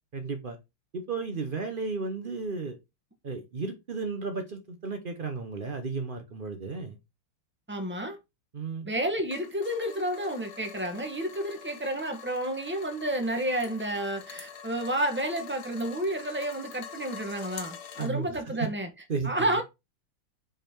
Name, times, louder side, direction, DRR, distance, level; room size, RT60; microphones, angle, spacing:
voice 1, 0.1-0.6 0.9-2.8 3.2-7.0 8.5-8.9 18.0-18.7 19.1-19.6, right 4 dB, 85° right, 0.4 m, -34 dB
voice 2, 7.7-8.2 8.8-18.9 19.2-19.6, right 1 dB, 10° right, 0.9 m, -30 dB
sound 1, 9.3-18.1, left 7 dB, 55° left, 1.5 m, -45 dB
5.2 x 4.9 x 4.4 m
omnidirectional pair, 2.3 m